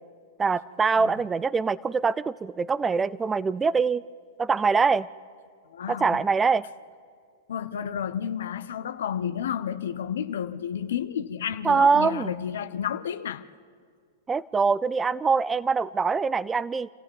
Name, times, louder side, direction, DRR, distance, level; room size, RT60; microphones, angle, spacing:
voice 1, 0.4-4.0 4.4-5.1 5.9-6.6 11.6-12.3 14.3-16.9, right 5 dB, 15° right, 0.5 m, -23 dB
voice 2, 5.7-6.2 7.5-13.4, left 8 dB, 75° left, 1.0 m, -31 dB
28.0 x 15.0 x 9.5 m
hypercardioid pair, 115°, 0 cm